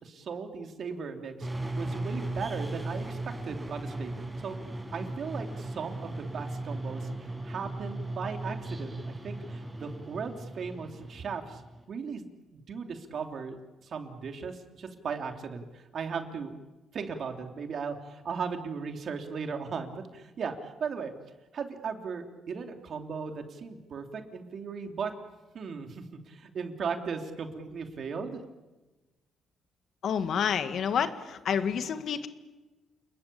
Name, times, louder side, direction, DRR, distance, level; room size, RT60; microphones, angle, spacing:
voice 1, 0.0-1.5 1.8-3.2 3.4-4.1 4.4-4.6 4.9-11.6 11.9-12.3 12.5-13.6 13.8-16.5 16.9-21.1 21.5-25.1 25.5-28.4, right 5 dB, 55° right, 5 dB, 3.2 m, -37 dB
sound 1, 1.4-11.8, right 2 dB, 15° right, 5.8 m, -37 dB
voice 2, 30.0-32.3, left 7 dB, 65° left, 9 dB, 2.0 m, -29 dB
29.0 x 21.0 x 8.5 m, 1.2 s
cardioid pair, 90°, 0 cm